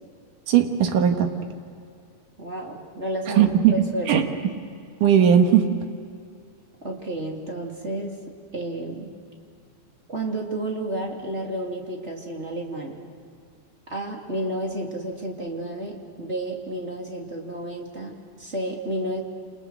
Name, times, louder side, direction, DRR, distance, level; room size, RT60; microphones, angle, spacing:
voice 1, 0.5-1.3 3.4-3.7 4.1-4.2 5.0-5.7, right 9 dB, 90° right, 4 dB, 3.1 m, -17 dB
voice 2, 2.4-4.5 6.8-8.2 8.5-9.1 10.1-13.0 13.9-19.2, right 1 dB, 20° right, 0 dB, 2.9 m, -31 dB
29.0 x 28.0 x 6.4 m, 2.3 s
omnidirectional pair, 3.5 m